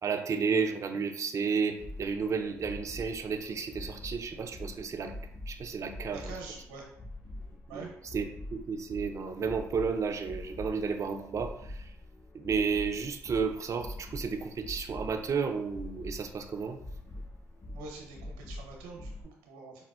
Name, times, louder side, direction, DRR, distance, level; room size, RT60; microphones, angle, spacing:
voice 1, 0.0-5.1 5.5-6.3 7.7-8.2 8.5-11.9 12.3-16.8, right 5 dB, 45° right, 5 dB, 0.4 m, -32 dB
sound 1, 1.8-19.2, left 1 dB, 45° left, 1.1 m, -44 dB
voice 2, 6.1-6.9 7.7-7.9 17.7-19.8, right 4 dB, 80° right, 0 dB, 0.7 m, -45 dB
4.2 x 2.1 x 2.3 m, 0.71 s
hypercardioid pair, 45°, 8 cm